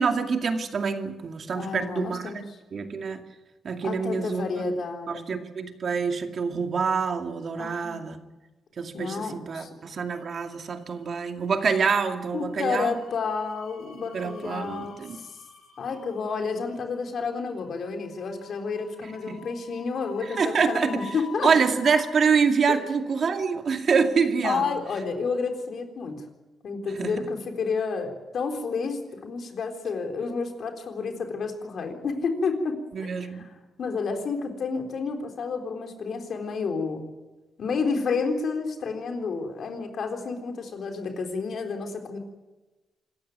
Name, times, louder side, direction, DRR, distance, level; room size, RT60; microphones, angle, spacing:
voice 1, 0.0-2.4 2.7-3.2 3.6-4.4 5.1-8.2 8.8-12.9 14.1-15.2 19.3-19.4 20.4-21.0 21.4-24.7 27.0-27.1 32.9-33.4, right 5 dB, 50° right, 5 dB, 2.3 m, -26 dB
voice 2, 1.6-2.6 3.8-5.4 7.6-8.0 8.9-9.7 12.3-15.3 15.8-21.5 22.7-22.8 24.4-26.2 26.6-37.1 37.6-42.2, left 4 dB, 55° left, 4 dB, 3.8 m, -30 dB
sound 1, 10.0-10.8 11.1-11.3 12.5-22.1, left 5 dB, 90° left, 4.0 m, -47 dB
26.5 x 14.0 x 9.5 m, 1.2 s
cardioid pair, 135°, 0 cm